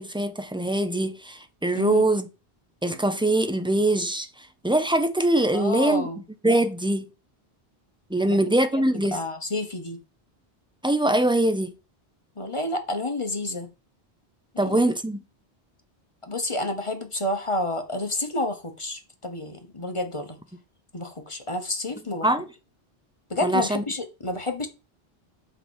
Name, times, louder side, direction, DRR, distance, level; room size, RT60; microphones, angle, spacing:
voice 1, 0.0-2.3 2.8-4.3 4.6-6.1 6.4-7.0 8.1-9.2 10.8-11.7 14.6-15.2 22.2-22.5 23.4-23.8, right 1 dB, 5° right, 0.8 m, -23 dB
voice 2, 1.7-2.1 5.5-6.2 8.2-8.4 8.7-8.8 9.1-10.0 12.4-13.7 14.5-14.8 16.2-20.4 20.9-22.3 23.3-24.7, left 2 dB, 30° left, 1.2 m, -30 dB
6.8 x 3.6 x 6.3 m
omnidirectional pair, 1.0 m